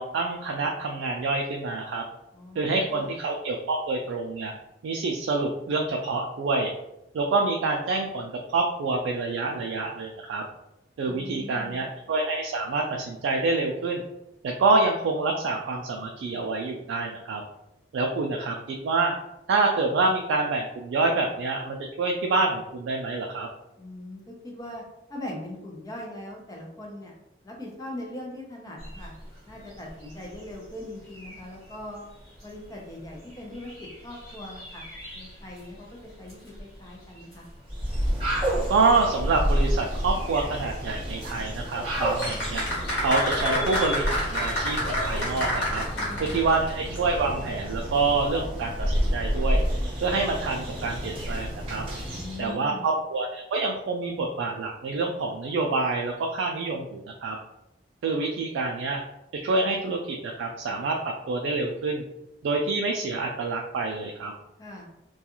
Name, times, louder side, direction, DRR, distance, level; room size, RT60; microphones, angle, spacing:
voice 1, 0.0-2.0 2.6-4.5 4.8-6.7 7.1-10.4 11.0-14.0 14.4-17.4 17.9-19.1 19.5-23.5 38.7-42.6 43.0-45.8 46.2-48.7 49.1-49.6 50.0-51.8 52.4-57.4 58.0-59.0 59.4-61.0 61.3-62.0 62.4-64.3, right 3 dB, 85° right, 1 dB, 0.3 m, -27 dB
voice 2, 2.3-3.1 11.0-11.8 23.8-24.8 25.1-27.1 27.4-29.1 29.4-32.1 32.4-34.8 35.1-37.5 45.9-46.5 52.1-52.9 64.6-64.9, left 1 dB, 20° left, -2 dB, 0.5 m, -40 dB
sound 1, 28.8-44.5, left 1 dB, ahead, 1.2 m, -45 dB
sound 2, 37.7-52.5, equal, 30° right, 0.8 m, -30 dB
sound 3, 42.2-46.7 47.0-47.1, equal, 75° left, 1.1 m, -28 dB
2.3 x 2.3 x 2.9 m, 0.87 s
head